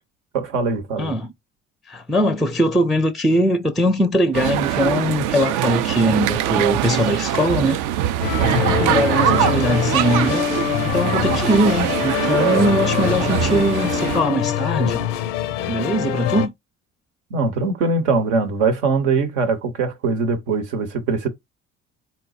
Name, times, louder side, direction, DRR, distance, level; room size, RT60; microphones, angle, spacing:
voice 1, 0.3-1.1 8.5-8.8 17.3-21.3, right 4 dB, 75° right, 0.9 m, -22 dB
voice 2, 1.0-1.3 1.9-7.8 8.6-10.4 10.8-15.0 15.7-16.5, equal, ahead, 0.4 m, -21 dB
sound 1, 4.3-14.2, right 12 dB, 60° right, 0.5 m, -22 dB
sound 2, 8.2-16.5, left 12 dB, 75° left, 0.5 m, -24 dB
4.0 x 2.2 x 4.0 m
hypercardioid pair, 50°, 37 cm